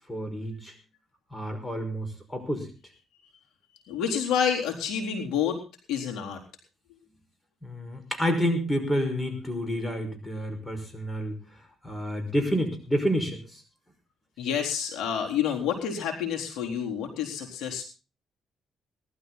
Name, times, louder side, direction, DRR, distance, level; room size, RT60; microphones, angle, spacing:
voice 1, 0.1-0.7 1.3-2.7 7.6-11.4 11.8-13.6, equal, 10° left, 6 dB, 5.4 m, -29 dB
voice 2, 3.9-5.6 5.9-6.4 14.4-17.8, left 8 dB, 85° left, 2 dB, 3.9 m, -28 dB
19.5 x 12.5 x 4.0 m, 0.33 s
cardioid pair, 90°, 0 cm